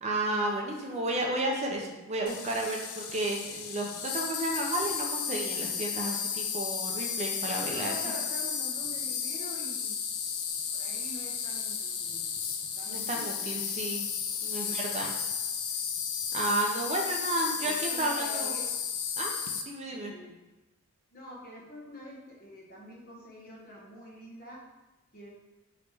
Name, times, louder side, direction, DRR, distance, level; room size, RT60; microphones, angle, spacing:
voice 1, 0.0-8.0 12.9-14.1 14.4-15.1 16.3-18.5 19.2-19.3 19.7-20.1, right 1 dB, 30° right, 0 dB, 0.5 m, -32 dB
Insect, 2.3-19.6, left 7 dB, 75° left, 0.5 m, -33 dB
voice 2, 7.6-10.0 10.7-12.3 12.8-13.3 14.6-14.8 16.8-17.2 17.6-18.7 19.9-20.4 21.1-24.7 25.1-25.3, left 1 dB, 45° left, -3 dB, 1.0 m, -46 dB
4.8 x 3.0 x 3.3 m, 1.1 s
head